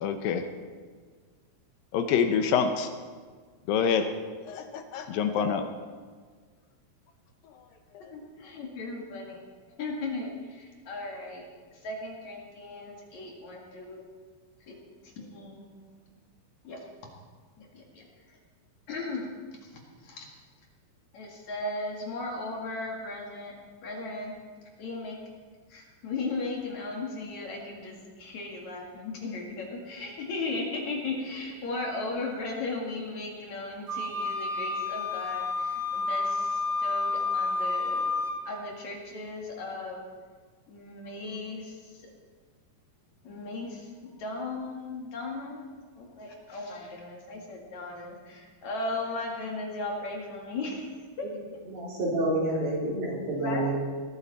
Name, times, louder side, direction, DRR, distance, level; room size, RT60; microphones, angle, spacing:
voice 1, 0.0-0.4 1.9-2.9 3.7-4.1 4.4-5.6 7.4-7.5 7.9-8.1, left 7 dB, 75° left, 7 dB, 2.5 m, -26 dB
voice 2, 8.1-9.4 9.8-14.0 14.6-14.8 15.0-15.8 16.6-16.8 17.6-18.4 18.9-19.3 19.6-20.3 21.1-24.3 24.8-25.2 25.7-38.1 38.5-40.0 40.7-42.1 43.2-45.6 46.0-50.9 51.2-51.3 53.4-53.7, left 2 dB, 55° left, -1 dB, 3.1 m, -37 dB
Wind instrument woodwind instrument, 33.9-38.4, left 3 dB, 35° right, 1.1 m, -30 dB
voice 3, 51.7-53.7, right 1 dB, 75° right, -4 dB, 5.3 m, -28 dB
19.5 x 13.5 x 4.2 m, 1.5 s
omnidirectional pair, 4.3 m